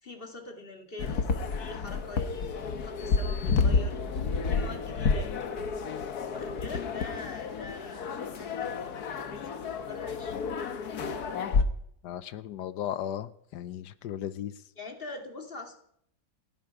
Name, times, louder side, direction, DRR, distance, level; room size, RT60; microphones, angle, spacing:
voice 1, 0.0-4.0 4.5-5.4 6.3-8.1 8.4-9.4 9.8-10.4 14.8-15.7, left 3 dB, 35° left, 4 dB, 2.8 m, -43 dB
sound 1, 1.0-11.6, left 5 dB, 70° left, 1.7 m, -30 dB
voice 2, 12.0-14.5, left 10 dB, 85° left, 15 dB, 1.4 m, -36 dB
29.0 x 9.8 x 4.8 m, 0.72 s
omnidirectional pair, 1.7 m